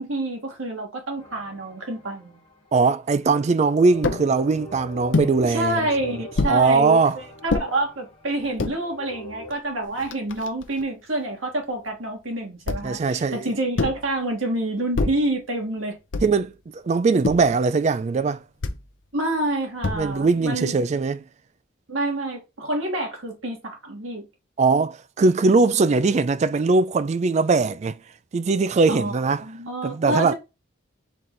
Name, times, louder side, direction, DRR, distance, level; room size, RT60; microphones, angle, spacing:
voice 1, 0.0-2.4 5.4-16.0 19.1-20.7 21.9-24.3 28.9-29.1 29.4-30.3, right 2 dB, 85° right, 1.8 m, -27 dB
sound 1, 1.2-2.9 3.6-9.5, left 1 dB, 25° left, 1.1 m, -42 dB
voice 2, 2.7-5.8 6.5-7.2 12.8-13.5 16.2-18.4 19.9-21.2 24.6-28.0 28.3-29.5 29.8-30.3, right 4 dB, 35° right, 0.3 m, -20 dB
sound 2, 4.0-4.3 5.1-5.4 6.4-6.6 7.5-7.7 8.4-8.8 9.5-9.6 9.8-10.8 12.7-13.0 13.8-14.1 14.9-15.3 16.1-16.5 17.2-17.6 18.6-18.9 19.8-20.3, left 3 dB, 65° left, 0.7 m, -26 dB
4.2 x 3.3 x 3.8 m
head